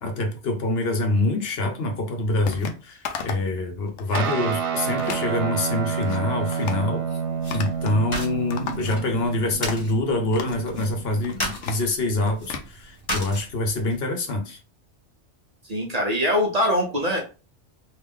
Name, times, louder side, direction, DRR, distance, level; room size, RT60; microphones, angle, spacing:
voice 1, 0.0-7.1 7.5-14.6, left 2 dB, 60° left, 1.0 m, -25 dB
sound 1, 2.5-2.8 3.1-3.5 3.9-4.3 5.0-5.3 5.8-6.2 6.5-6.9 7.5-8.0 8.3-9.2 9.7-9.8 10.3-10.6 11.1-12.7, left 6 dB, 85° left, 0.9 m, -35 dB
Guitar, 4.1-11.8, right 6 dB, 85° right, 0.9 m, -29 dB
sound 2, 7.4-14.0, equal, 25° left, 1.1 m, -36 dB
voice 2, 15.7-17.2, left 1 dB, 40° right, 0.7 m, -22 dB
3.2 x 2.4 x 3.6 m
omnidirectional pair, 1.2 m